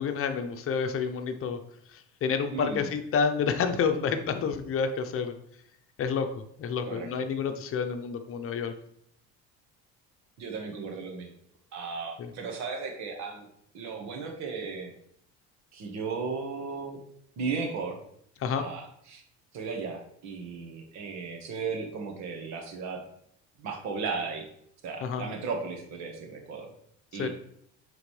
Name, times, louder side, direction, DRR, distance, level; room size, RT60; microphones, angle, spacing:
voice 1, 0.0-1.6 2.2-5.3 6.0-6.3 6.6-8.7 12.2-12.3 18.4-18.7 25.0-25.2 27.2-27.3, left 6 dB, 50° left, 7 dB, 0.8 m, -29 dB
voice 2, 2.5-2.9 6.8-7.1 10.4-11.3 11.7-13.5 13.7-14.9 15.7-17.0 17.4-18.0 18.5-19.2 19.5-23.0 23.6-24.5 24.8-26.7 27.1-27.3, right 5 dB, 70° right, 3 dB, 1.6 m, -35 dB
8.8 x 3.9 x 3.2 m, 0.70 s
cardioid pair, 115°, 29 cm